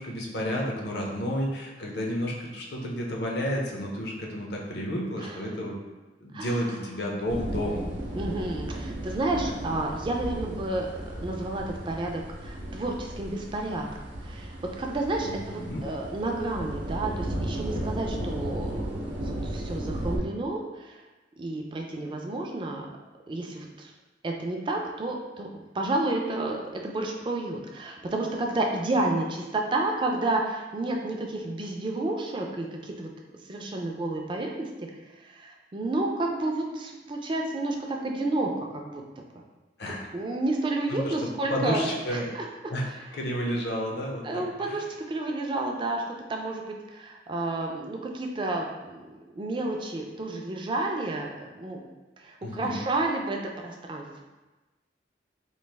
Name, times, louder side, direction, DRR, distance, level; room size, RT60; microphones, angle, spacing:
voice 1, 0.0-5.8 6.2-7.9 15.2-15.8 39.8-40.0 40.9-41.1 41.5-42.3 42.7-42.9 43.1-44.8 52.4-52.8, equal, 60° left, -1 dB, 0.6 m, -31 dB
voice 2, 6.3-6.8 8.2-13.9 14.2-21.0 21.4-22.9 23.3-23.9 24.2-25.5 25.7-33.1 33.5-34.7 35.2-39.2 39.9-42.5 42.9-43.0 44.2-46.0 46.3-51.8 52.2-54.1, right 2 dB, 25° right, 1 dB, 0.3 m, -31 dB
sound 1, 7.3-20.2, right 1 dB, 90° right, 0.7 m, -35 dB
3.1 x 2.4 x 3.3 m, 1.2 s
head